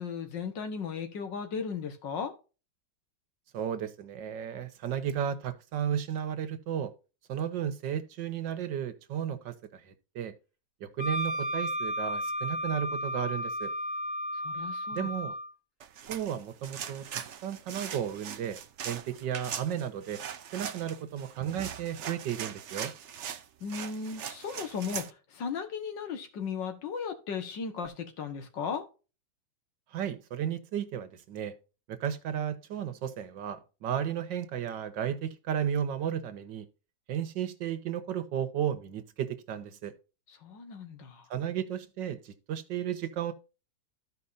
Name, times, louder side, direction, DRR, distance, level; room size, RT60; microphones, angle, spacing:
voice 1, 0.0-2.3 14.4-15.1 23.6-28.8 40.4-41.3, left 6 dB, 85° left, 2.1 m, -36 dB
voice 2, 3.5-6.9 7.3-10.3 10.8-13.7 14.9-15.3 16.1-18.6 18.8-20.2 20.5-22.9 29.9-31.5 31.9-36.7 37.1-39.9 41.3-43.3, right 9 dB, 85° right, 1.7 m, -34 dB
Wind instrument woodwind instrument, 11.0-15.5, equal, 45° left, 3.1 m, -33 dB
sound 1, 15.8-25.1, right 8 dB, 60° right, 0.7 m, -41 dB
14.5 x 5.1 x 2.6 m
omnidirectional pair, 1.9 m